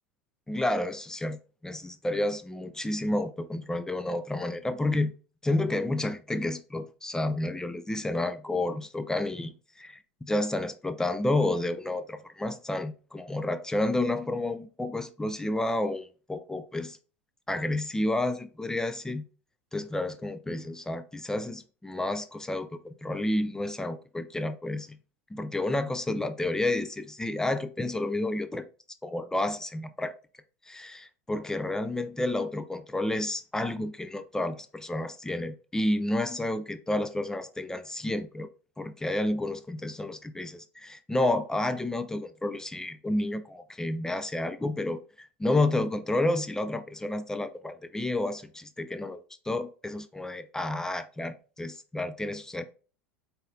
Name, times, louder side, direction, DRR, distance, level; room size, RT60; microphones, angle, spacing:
voice 1, 0.5-5.1 5.4-17.0 17.5-19.2 19.7-25.0 25.3-28.6 29.0-30.1 30.7-38.5 38.8-52.6, left 1 dB, 10° left, 0.4 m, -30 dB
4.0 x 3.8 x 2.6 m
figure-of-eight pair, 80°, 7 cm